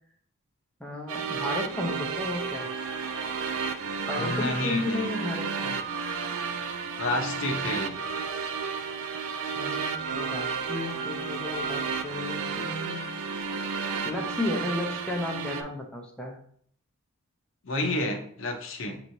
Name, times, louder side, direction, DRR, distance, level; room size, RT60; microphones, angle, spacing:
voice 1, 0.8-2.7 4.1-5.8 9.6-13.0 14.0-16.4, left 1 dB, 5° left, 0 dB, 0.5 m, -33 dB
sound 1, 1.1-15.6, right 5 dB, 80° right, 0.4 m, -32 dB
sound 2, 2.5-14.6, right 2 dB, 45° right, 0.9 m, -42 dB
voice 2, 4.2-5.1 7.0-8.0 17.6-19.0, left 2 dB, 65° left, 3 dB, 0.7 m, -30 dB
5.4 x 3.0 x 2.6 m, 0.62 s
head